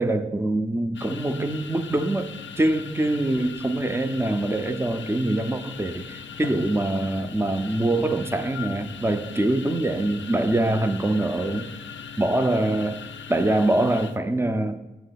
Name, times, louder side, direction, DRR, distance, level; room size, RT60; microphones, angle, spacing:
voice 1, 0.0-2.3 2.6-11.7 12.2-13.0 13.3-14.8, right 1 dB, 15° right, 10 dB, 0.4 m, -24 dB
sound 1, 0.9-14.2, left 7 dB, 80° left, 0.4 m, -39 dB
7.3 x 3.0 x 5.6 m, 1.1 s
wide cardioid pair, 65°, 19 cm